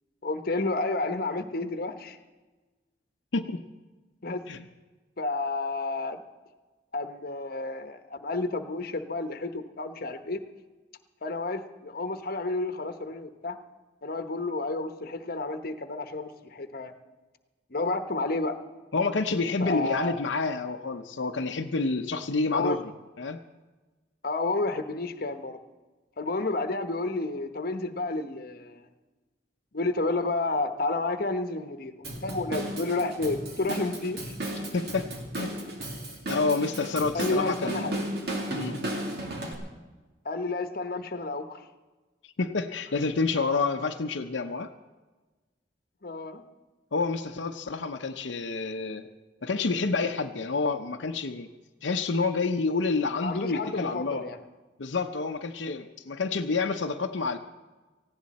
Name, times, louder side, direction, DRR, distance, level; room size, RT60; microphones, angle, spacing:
voice 1, 0.2-2.2 4.2-4.4 5.2-6.2 6.9-10.4 11.2-13.6 14.0-16.9 17.7-18.6 19.6-20.2 22.5-22.8 24.2-25.6 26.2-28.9 29.7-34.4 37.1-37.9 40.2-41.7 46.0-46.4 53.2-54.4, left 2 dB, 55° left, 8 dB, 1.0 m, -31 dB
voice 2, 18.9-22.8 23.2-23.4 34.7-35.1 35.4-35.6 36.3-38.1 38.5-38.8 42.4-44.7 46.9-49.1 49.4-51.5 51.8-54.3 54.8-57.4, left 4 dB, 85° left, 4 dB, 0.7 m, -28 dB
Drum kit / Drum, 32.0-39.5, right 1 dB, 60° right, 2.7 m, -34 dB
18.5 x 16.0 x 4.2 m, 1.2 s
head